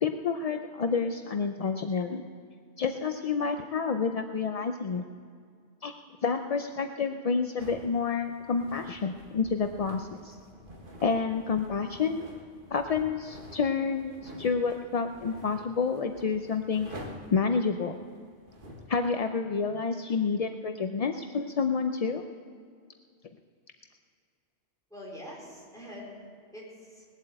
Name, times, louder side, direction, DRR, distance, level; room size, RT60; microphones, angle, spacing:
voice 1, 0.0-2.3 2.8-5.1 5.8-5.9 6.2-10.4 11.0-12.3 12.7-16.9 17.3-18.0 18.9-22.2, left 5 dB, 50° left, 6 dB, 0.4 m, -29 dB
sound 1, 7.6-19.0, equal, 45° right, 1.8 m, -48 dB
voice 2, 24.9-27.0, equal, 5° left, -5 dB, 4.3 m, -45 dB
19.5 x 8.2 x 7.7 m, 2.1 s
omnidirectional pair, 1.2 m